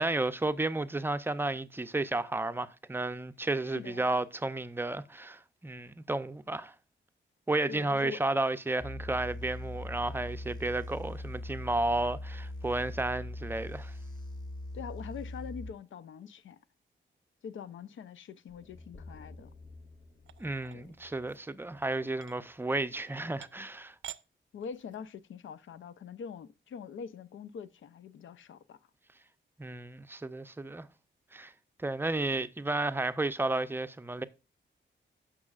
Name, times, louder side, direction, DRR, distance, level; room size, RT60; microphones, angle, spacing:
voice 1, 0.0-6.7 7.5-13.9 20.4-23.9 29.6-30.9 31.3-31.5 31.8-34.2, right 2 dB, 10° right, 0.5 m, -32 dB
voice 2, 3.7-4.1 7.7-8.2 14.7-16.6 17.4-19.5 20.7-20.9 24.5-28.8, left 6 dB, 80° left, 0.7 m, -44 dB
sound 1, 8.8-15.7, left 1 dB, 20° left, 2.1 m, -41 dB
sound 2, 18.5-22.6, left 3 dB, 40° left, 1.2 m, -53 dB
sound 3, 20.3-21.5 22.1-22.4 23.1-23.2 23.4-23.8 24.0-24.2 24.6-25.1, right 11 dB, 75° right, 0.6 m, -47 dB
16.0 x 6.2 x 2.4 m
wide cardioid pair, 155°, 20 cm